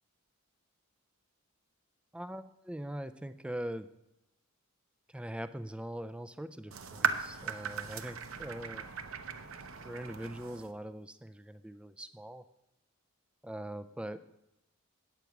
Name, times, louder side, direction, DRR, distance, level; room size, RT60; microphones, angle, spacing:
voice 1, 2.1-3.9 5.1-8.9 9.8-12.4 13.4-14.2, right 1 dB, 5° right, 11 dB, 0.3 m, -42 dB
sound 1, 6.7-10.7, right 6 dB, 70° right, 0.7 m, -37 dB
9.2 x 8.2 x 5.9 m, 0.93 s
head